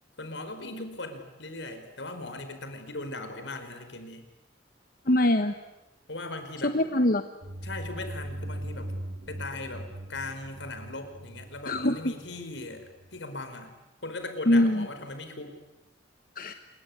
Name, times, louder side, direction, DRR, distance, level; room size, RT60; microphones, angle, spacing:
voice 1, 0.2-4.2 6.1-6.8 7.6-8.9 9.3-13.7 14.0-15.6, left 2 dB, 80° left, 8 dB, 4.8 m, -39 dB
voice 2, 5.1-5.6 6.6-7.2 11.6-12.1 14.5-14.9 16.4-16.5, left 1 dB, 50° left, 8 dB, 1.1 m, -23 dB
sound 1, 7.4-13.2, right 1 dB, 55° right, 2.1 m, -40 dB
26.5 x 22.0 x 10.0 m, 0.98 s
head